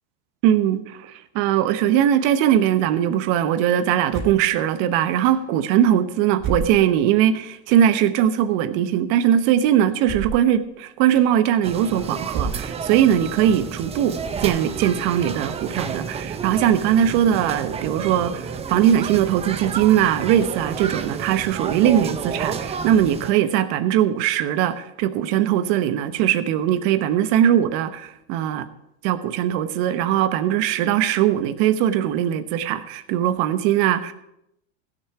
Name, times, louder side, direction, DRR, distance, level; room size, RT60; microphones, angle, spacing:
voice 1, 0.4-14.2 14.4-28.7 29.0-34.1, right 10 dB, 55° right, 12 dB, 1.0 m, -20 dB
sound 1, 4.1-4.5 5.2-5.3 6.4-7.1 7.7-7.9 10.0-10.5 11.2-11.3 12.3-12.8 13.2-13.3 14.3-14.9, right 5 dB, 40° right, 2.6 m, -30 dB
sound 2, 11.6-23.3, right 6 dB, 20° right, 0.7 m, -31 dB
16.0 x 6.9 x 4.8 m, 0.82 s
supercardioid pair, 125°, 32 cm